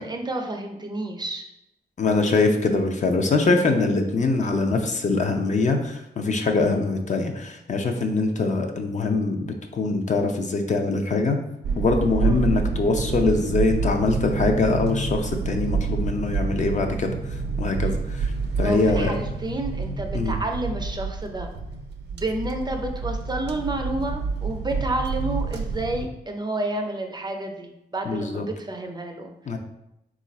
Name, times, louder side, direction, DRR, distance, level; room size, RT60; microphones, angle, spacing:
voice 1, 0.0-1.5 12.2-12.4 18.6-21.5 22.1-29.3, right 2 dB, 25° right, 3 dB, 0.5 m, -30 dB
voice 2, 2.0-11.4 11.8-18.3 18.6-19.1 20.1-20.4 28.1-28.4 29.5-29.6, left 3 dB, 45° left, 4 dB, 0.5 m, -23 dB
sound 1, 11.6-26.1, right 4 dB, 90° right, 0.5 m, -28 dB
3.8 x 2.4 x 4.1 m, 0.84 s
cardioid pair, 100°, 17 cm